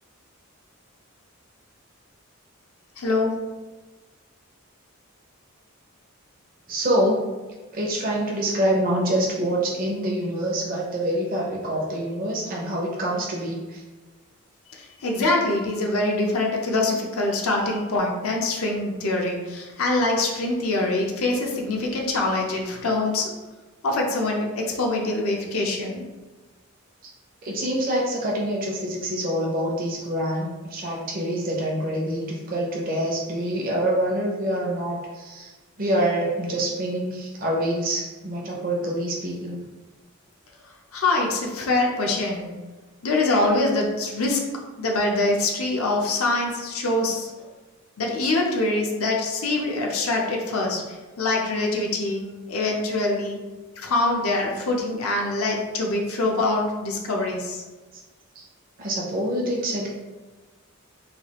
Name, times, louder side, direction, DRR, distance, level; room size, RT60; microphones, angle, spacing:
voice 1, 3.0-3.3 14.7-23.3 23.8-26.0 40.9-42.5 43.0-44.4 44.8-47.5 48.0-53.4 53.8-57.6, left 2 dB, 80° left, 0 dB, 0.6 m, -24 dB
voice 2, 6.7-7.2 7.7-13.8 27.4-35.5 35.8-39.6 58.4-58.5 58.8-59.9, right 1 dB, 40° right, -3 dB, 0.6 m, -26 dB
3.2 x 2.3 x 2.9 m, 1.2 s
head